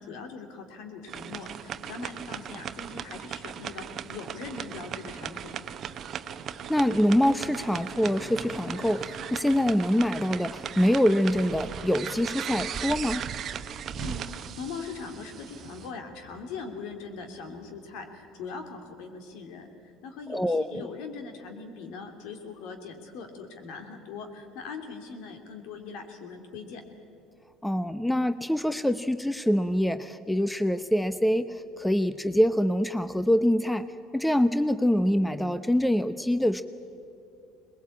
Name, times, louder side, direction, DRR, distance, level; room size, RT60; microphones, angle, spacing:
voice 1, 0.0-5.5 13.9-19.7 20.0-26.8, left 4 dB, 70° left, 5 dB, 2.9 m, -41 dB
sound 1, 1.1-15.9, right 9 dB, 50° right, 0.9 m, -38 dB
sound 2, 1.5-19.0, left 1 dB, 50° left, 4.2 m, -52 dB
voice 2, 6.7-13.3 20.3-20.9 27.6-33.9 34.1-36.6, equal, 5° left, 12 dB, 0.8 m, -25 dB
22.0 x 20.5 x 8.5 m, 2.6 s
hypercardioid pair, 75°, 0 cm